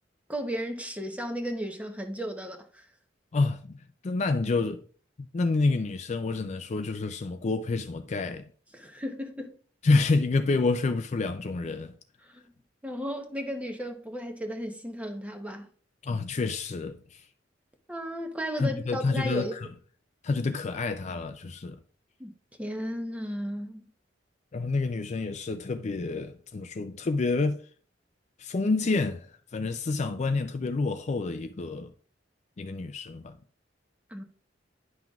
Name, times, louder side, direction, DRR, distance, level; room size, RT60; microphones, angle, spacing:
voice 1, 0.3-2.8 8.7-9.5 12.3-12.5 12.8-15.7 17.9-19.6 22.2-22.3 22.6-23.9 34.1-34.2, equal, 10° right, 0.9 m, -34 dB
voice 2, 3.3-4.8 5.2-8.5 9.8-11.9 16.0-17.3 18.6-19.7 20.2-21.8 24.5-27.7 28.4-31.9 32.6-33.4, left 3 dB, 40° left, 0.4 m, -28 dB
10.5 x 5.8 x 2.4 m
head